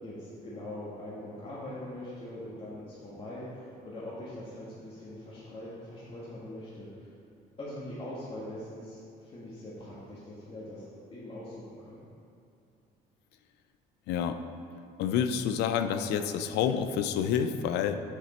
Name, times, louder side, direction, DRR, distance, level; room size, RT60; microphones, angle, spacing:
voice 1, 0.0-7.1 7.6-10.8 11.1-12.0, left 1 dB, 35° left, -8 dB, 1.5 m, -42 dB
voice 2, 14.1-14.4 15.0-18.0, left 8 dB, 85° left, 9 dB, 0.5 m, -28 dB
6.8 x 6.3 x 4.3 m, 2.6 s
cardioid pair, 110°, 17 cm